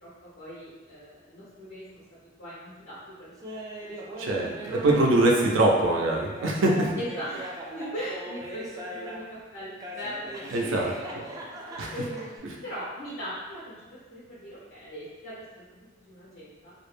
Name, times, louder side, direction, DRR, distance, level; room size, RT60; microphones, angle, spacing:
voice 1, 0.0-2.0 2.4-3.3 3.8-4.7 7.0-11.1 11.9-13.8 14.1-16.7, equal, 85° left, -10 dB, 0.7 m, -40 dB
Laughter, 3.4-9.4 9.8-12.4, right 1 dB, 20° right, 0.3 m, -40 dB
voice 2, 4.2-6.9 10.5-11.3 11.8-11.9, right 2 dB, 85° right, -1 dB, 0.4 m, -23 dB
2.3 x 2.0 x 3.1 m, 1.2 s
head